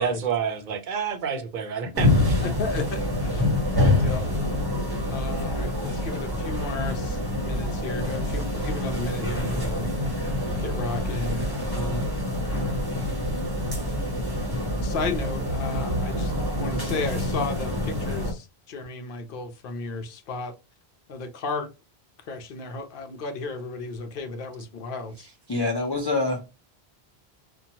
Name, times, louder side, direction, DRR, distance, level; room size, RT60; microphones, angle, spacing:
voice 1, 0.0-2.5, right 7 dB, 55° right, 0.6 m, -29 dB
sound 1, 1.9-18.3, left 1 dB, 25° right, 0.8 m, -26 dB
voice 2, 2.4-3.5 3.8-4.3 5.1-9.9 10.6-12.0 14.8-20.5 21.1-21.7 22.3-25.3, left 3 dB, 65° left, 0.8 m, -34 dB
voice 3, 25.5-26.5, left 2 dB, 35° left, 0.4 m, -25 dB
2.8 x 2.2 x 2.7 m
omnidirectional pair, 1.0 m